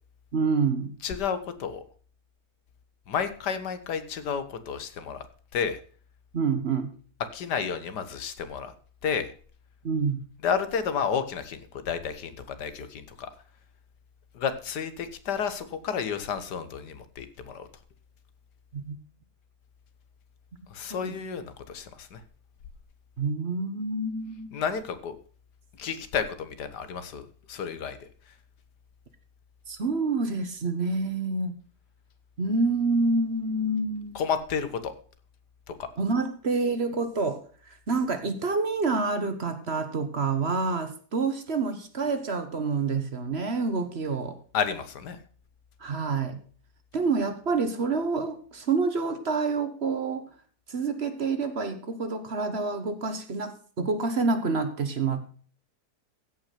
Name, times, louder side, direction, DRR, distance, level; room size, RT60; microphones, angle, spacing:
voice 1, 0.3-0.9 6.3-6.9 9.8-10.3 18.7-19.0 20.9-21.1 23.2-24.6 29.7-31.5 32.4-34.2 36.0-44.4 45.8-46.4 46.9-50.2 50.7-55.2, right 4 dB, 45° right, 9 dB, 1.4 m, -28 dB
voice 2, 1.0-1.8 3.1-5.3 5.5-5.8 7.3-8.7 9.0-9.3 10.4-13.3 14.4-17.7 20.7-22.2 24.5-25.1 25.8-28.1 34.2-34.9 35.7-35.9 44.5-45.2, left 6 dB, 85° left, 11 dB, 1.7 m, -31 dB
15.5 x 5.9 x 5.8 m, 0.43 s
omnidirectional pair, 1.7 m